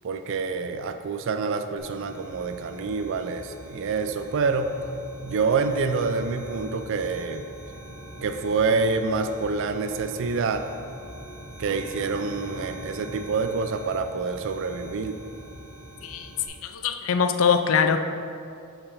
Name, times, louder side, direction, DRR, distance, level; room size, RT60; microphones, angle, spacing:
voice 1, 0.0-4.7 5.2-7.4 8.2-10.7 11.6-15.2, right 4 dB, 55° right, 8 dB, 0.4 m, -27 dB
sound 1, 1.8-16.5, right 1 dB, 5° right, 1.6 m, -43 dB
voice 2, 16.0-18.0, left 6 dB, 65° left, 8 dB, 0.4 m, -23 dB
5.3 x 4.6 x 5.6 m, 2.5 s
head